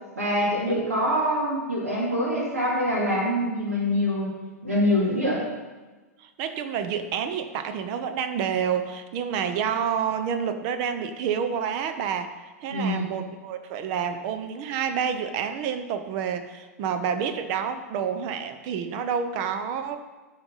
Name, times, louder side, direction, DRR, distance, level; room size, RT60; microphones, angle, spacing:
voice 1, 0.2-4.3 4.6-5.4 12.7-13.0, left 1 dB, 75° right, -6 dB, 2.2 m, -24 dB
voice 2, 0.7-1.0 6.2-12.3 12.6-20.0, right 7 dB, 40° right, 9 dB, 0.7 m, -29 dB
9.4 x 4.1 x 5.6 m, 1.3 s
figure-of-eight pair, 100°, 8 cm